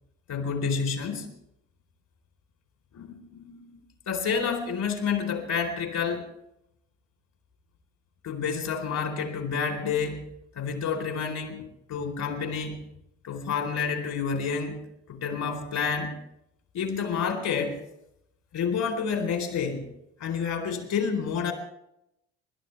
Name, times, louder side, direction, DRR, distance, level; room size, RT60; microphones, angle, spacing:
voice 1, 0.3-1.3 2.9-6.3 8.2-10.3 10.5-12.8 13.2-14.8 15.1-16.2 16.7-17.8 18.5-19.9 20.2-21.5, left 6 dB, 50° left, 5 dB, 4.1 m, -29 dB
26.5 x 12.5 x 3.5 m, 0.80 s
hypercardioid pair, 65°, 38 cm